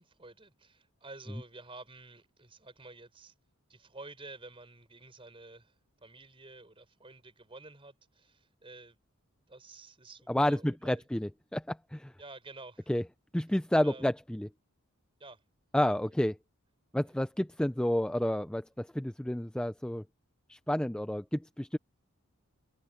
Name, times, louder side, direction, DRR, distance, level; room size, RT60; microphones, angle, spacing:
voice 1, 0.0-3.3 3.7-9.0 9.5-11.1 12.2-12.9 13.7-14.1 15.2-15.4 16.0-16.1 17.0-17.1, right 2 dB, 25° right, 5.0 m, -51 dB
voice 2, 10.3-12.1 12.9-13.0 13.3-14.5 15.7-16.4 16.9-20.0 20.5-21.8, left 1 dB, 5° left, 0.3 m, -30 dB
head